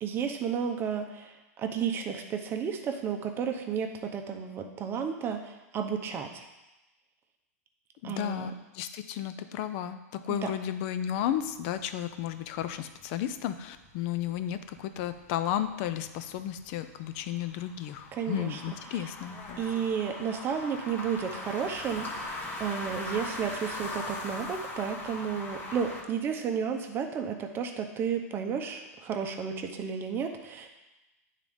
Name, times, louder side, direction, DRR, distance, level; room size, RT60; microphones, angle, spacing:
voice 1, 0.0-6.5 8.0-8.5 10.3-10.5 18.1-18.6 18.9-19.0 19.6-30.7, right 7 dB, 25° right, 4 dB, 0.7 m, -32 dB
voice 2, 8.0-19.6, left 11 dB, 45° left, 11 dB, 0.5 m, -33 dB
sound 1, 11.2-26.0, left 2 dB, 20° left, 1.1 m, -41 dB
9.2 x 3.7 x 3.6 m, 1.1 s
hypercardioid pair, 130°, 9 cm